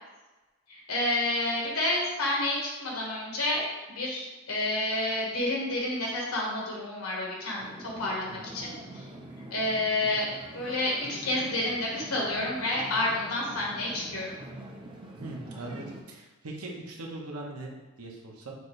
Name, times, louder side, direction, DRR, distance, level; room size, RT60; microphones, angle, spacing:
voice 1, 0.7-9.0 9.5-10.3 10.5-14.4, left 1 dB, 80° left, -3 dB, 1.3 m, -29 dB
sound 1, 7.6-16.0, right 1 dB, 20° right, 0.5 m, -44 dB
voice 2, 15.1-18.6, right 2 dB, 85° right, -1 dB, 0.9 m, -40 dB
6.3 x 2.6 x 3.1 m, 1.2 s
head